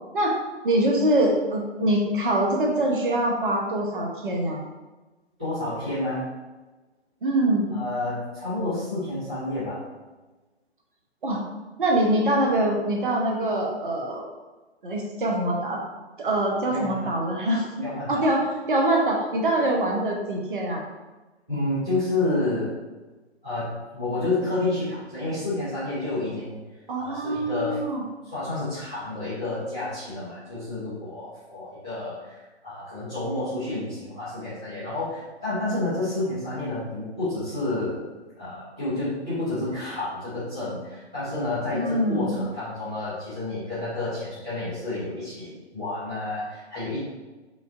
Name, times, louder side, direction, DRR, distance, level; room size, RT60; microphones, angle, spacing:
voice 1, 0.6-4.6 7.2-7.7 11.2-11.4 11.8-14.2 14.8-15.8 16.2-17.7 18.1-18.4 18.7-20.8 26.9-28.0 41.7-42.4, right 1 dB, 50° right, 0 dB, 0.8 m, -24 dB
voice 2, 5.4-6.2 7.7-9.8 16.7-17.1 17.8-18.2 21.5-22.7 23.4-26.6 27.0-27.8 28.2-38.0 38.4-47.0, left 2 dB, 5° right, -18 dB, 0.4 m, -30 dB
5.0 x 2.5 x 2.5 m, 1.2 s
figure-of-eight pair, 130°, 34 cm